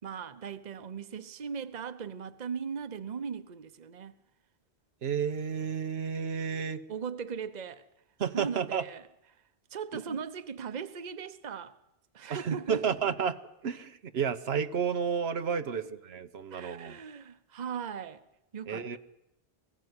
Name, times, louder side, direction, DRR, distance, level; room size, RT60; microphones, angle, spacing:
voice 1, 0.0-4.2 6.9-7.9 8.3-9.1 9.7-11.7 12.1-12.9 15.7-15.8 16.5-18.2 18.5-19.0, right 6 dB, 45° right, 1.0 m, -38 dB
voice 2, 5.0-6.8 8.2-8.8 12.3-13.4 13.6-17.0 18.7-19.0, right 7 dB, 85° right, 1.2 m, -31 dB
20.0 x 16.0 x 9.7 m
omnidirectional pair, 1.0 m